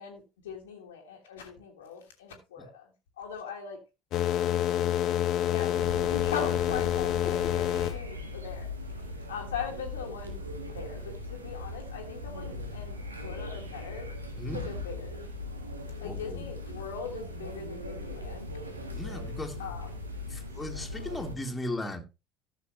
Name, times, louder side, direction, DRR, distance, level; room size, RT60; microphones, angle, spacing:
voice 1, 0.0-2.9 3.2-3.8 5.5-10.4 10.7-14.1 14.5-15.2 16.0-18.5 19.6-19.9, left 7 dB, 70° left, 1.6 m, -40 dB
sound 1, 4.1-8.0, left 11 dB, 50° left, 0.8 m, -27 dB
sound 2, 5.7-21.4, left 2 dB, 85° right, 1.4 m, -39 dB
voice 2, 16.0-16.5 18.9-19.6 20.3-22.0, left 1 dB, 15° left, 2.2 m, -37 dB
13.5 x 6.6 x 2.9 m
figure-of-eight pair, 60°, 0 cm